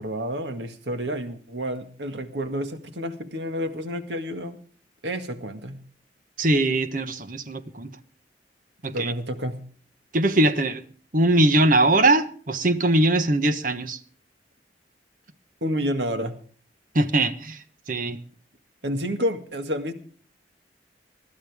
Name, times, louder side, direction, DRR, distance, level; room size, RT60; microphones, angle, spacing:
voice 1, 0.0-4.6 5.0-5.8 8.9-9.6 15.6-16.3 18.8-19.9, equal, 75° right, 2.0 m, -29 dB
voice 2, 6.4-7.9 8.8-9.1 10.1-10.8 11.1-14.0 16.9-17.6 17.9-18.2, right 2 dB, 50° right, 1.3 m, -21 dB
21.0 x 13.0 x 3.6 m
head